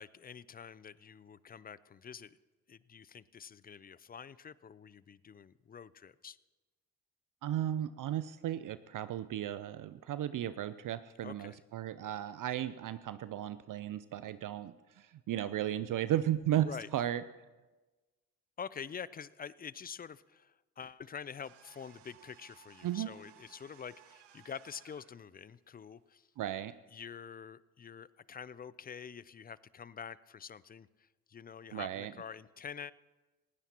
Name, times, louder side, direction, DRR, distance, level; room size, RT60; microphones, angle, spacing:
voice 1, 0.0-2.4 2.7-6.4 11.2-11.6 16.6-16.9 18.6-26.3 26.9-32.9, left 7 dB, 25° left, 20 dB, 0.4 m, -47 dB
voice 2, 7.4-17.2 22.8-23.1 26.4-26.7 31.7-32.1, right 11 dB, 50° right, 14 dB, 0.5 m, -35 dB
sound 1, 21.4-25.2, right 11 dB, 70° right, 1.1 m, -60 dB
19.5 x 16.5 x 2.9 m, 1.2 s
hypercardioid pair, 50°, 43 cm